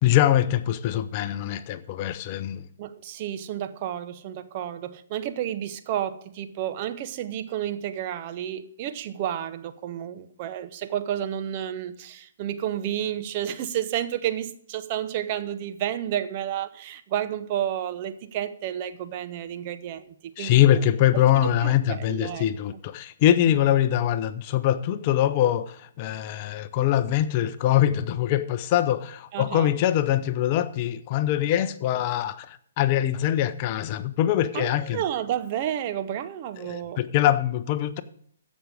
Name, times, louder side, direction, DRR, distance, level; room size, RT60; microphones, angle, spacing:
voice 1, 0.0-2.7 20.4-35.0 36.6-38.0, left 12 dB, 35° left, 0.6 m, -23 dB
voice 2, 2.8-20.8 21.3-22.5 23.5-23.6 29.3-29.8 34.5-37.0, right 11 dB, 40° right, 0.8 m, -31 dB
14.5 x 6.2 x 5.0 m
figure-of-eight pair, 130°, 0 cm